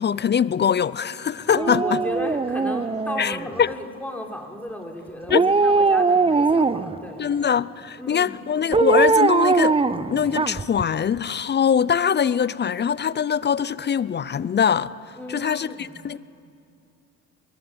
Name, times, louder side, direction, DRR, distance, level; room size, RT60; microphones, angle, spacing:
voice 1, 0.0-2.0 3.2-3.7 5.3-5.4 7.2-14.9 15.3-16.2, left 7 dB, 30° left, 0.6 m, -22 dB
Dog, 1.5-3.6 5.3-7.0 8.7-10.8 11.2-11.3, right 4 dB, 15° right, 0.7 m, -20 dB
voice 2, 1.6-7.2 8.0-8.3 15.2-16.0, left 1 dB, 5° left, 3.7 m, -34 dB
23.0 x 19.5 x 8.1 m
hypercardioid pair, 70°, 36 cm